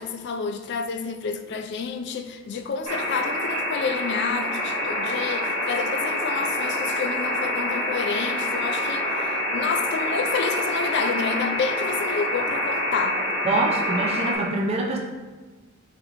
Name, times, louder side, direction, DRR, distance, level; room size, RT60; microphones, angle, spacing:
voice 1, 0.0-13.2, left 5 dB, 55° left, 0.3 m, -29 dB
sound 1, 2.9-14.4, left 1 dB, 75° right, 1.4 m, -26 dB
voice 2, 13.4-15.0, right 2 dB, 30° right, 0.5 m, -24 dB
4.1 x 2.9 x 3.8 m
head